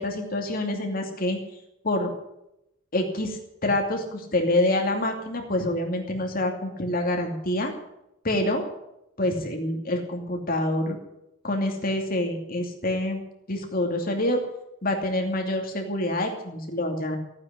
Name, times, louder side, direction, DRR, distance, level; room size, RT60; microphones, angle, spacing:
voice 1, 0.0-1.4 1.8-2.1 2.9-7.7 8.2-8.7 9.2-11.0 11.4-13.2 13.5-14.4 14.8-17.2, left 1 dB, 45° left, 3 dB, 2.6 m, -26 dB
14.5 x 9.7 x 10.0 m, 0.85 s
head